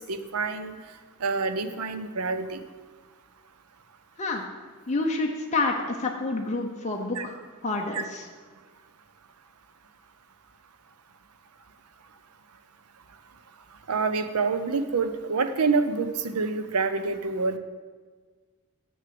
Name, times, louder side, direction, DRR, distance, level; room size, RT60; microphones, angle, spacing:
voice 1, 0.1-0.7 1.2-2.6 7.2-7.3 7.9-8.0 13.9-17.6, right 4 dB, 80° right, 10 dB, 0.7 m, -27 dB
voice 2, 4.9-7.3 7.6-8.3, left 3 dB, 35° left, 0 dB, 0.8 m, -28 dB
6.6 x 6.4 x 7.6 m, 1.5 s
head